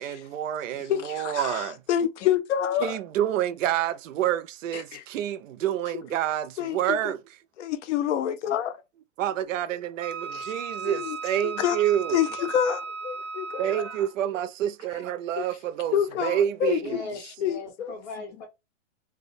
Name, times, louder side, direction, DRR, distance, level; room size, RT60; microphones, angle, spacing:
voice 1, 0.0-1.8 2.8-7.2 9.2-12.2 13.6-17.0, right 11 dB, 85° right, 0.5 m, -28 dB
voice 2, 0.9-3.0 4.7-5.0 6.6-7.1 7.6-8.8 10.3-10.4 10.8-11.2 11.4-11.8 12.1-13.9 15.4-15.5 15.9-17.0 17.4-18.0, left 10 dB, 70° left, 0.6 m, -27 dB
Wind instrument woodwind instrument, 10.0-14.2, right 5 dB, 25° right, 0.6 m, -36 dB
voice 3, 16.8-18.5, left 3 dB, 20° left, 0.5 m, -38 dB
2.3 x 2.1 x 2.5 m
hypercardioid pair, 160°, 37 cm